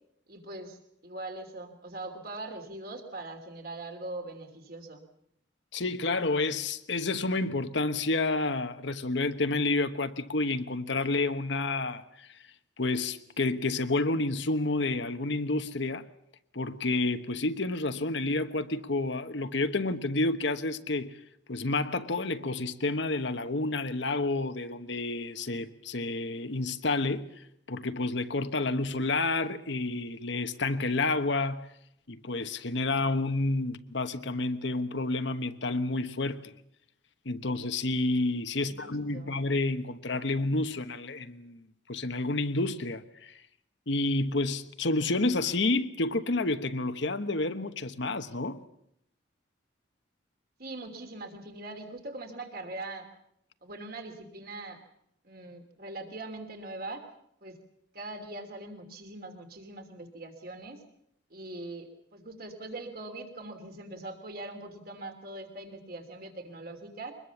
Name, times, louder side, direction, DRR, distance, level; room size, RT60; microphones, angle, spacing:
voice 1, 0.3-5.0 38.6-39.4 50.6-53.1 53.6-54.8 55.2-57.0 57.4-57.6 57.9-60.8 61.3-67.1, right 2 dB, 50° right, 3.1 m, -42 dB
voice 2, 5.7-12.3 12.8-16.0 16.5-21.1 21.5-27.3 27.7-31.7 32.1-36.5 37.2-41.6 41.9-43.3 43.9-48.6, left 2 dB, 65° left, 1.2 m, -29 dB
23.5 x 21.0 x 7.2 m
head